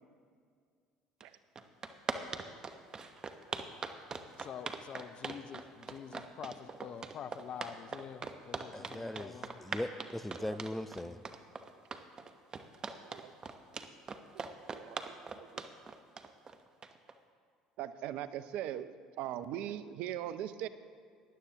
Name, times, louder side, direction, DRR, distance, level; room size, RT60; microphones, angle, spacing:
sound 1, 1.2-1.3 1.5-17.1, right 4 dB, 35° right, 0.9 m, -41 dB
voice 1, 4.4-9.6, left 8 dB, 50° left, 0.7 m, -46 dB
voice 2, 8.7-11.2, left 1 dB, 5° left, 0.6 m, -39 dB
voice 3, 13.0-13.3 14.3-15.6 17.8-20.7, right 11 dB, 65° right, 0.5 m, -41 dB
19.0 x 11.0 x 2.9 m
hypercardioid pair, 65°, 2 cm